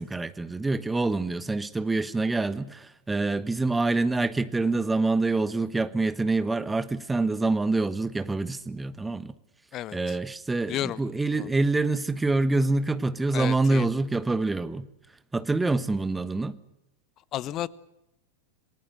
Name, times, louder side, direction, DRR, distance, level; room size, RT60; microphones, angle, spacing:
voice 1, 0.0-9.3 9.9-14.9 15.3-16.6, right 3 dB, 10° right, 1.2 m, -26 dB
voice 2, 9.7-10.2 10.7-11.0 11.3-11.5 13.3-13.9 17.3-17.7, left 13 dB, 35° left, 0.9 m, -32 dB
28.0 x 20.0 x 6.5 m
figure-of-eight pair, 90°, 0 cm